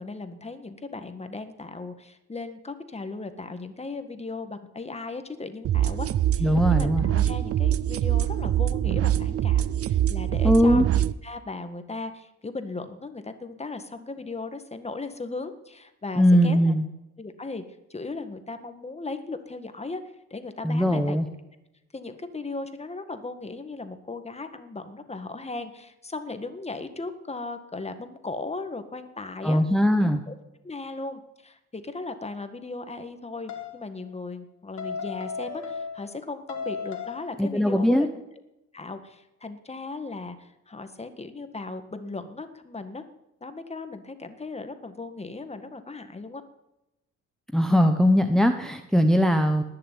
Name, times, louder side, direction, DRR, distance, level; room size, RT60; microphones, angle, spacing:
voice 1, 0.0-6.1 6.4-10.9 11.2-16.6 17.2-17.6 17.9-20.0 20.3-21.2 21.9-29.6 30.3-30.4 30.6-38.1 38.7-43.0 43.4-46.4, left 3 dB, 20° left, 9 dB, 1.8 m, -37 dB
sound 1, 5.6-11.1, right 11 dB, 50° right, 0.6 m, -24 dB
voice 2, 6.4-7.1 10.4-10.8 16.2-16.8 20.6-21.3 29.4-30.2 37.4-38.1 47.5-49.6, equal, ahead, 6 dB, 1.1 m, -20 dB
sound 2, 33.5-33.8 34.8-36.2 36.5-37.4, left 6 dB, 70° left, 3.1 m, -35 dB
19.5 x 6.7 x 9.2 m, 0.92 s
cardioid pair, 90°, 30 cm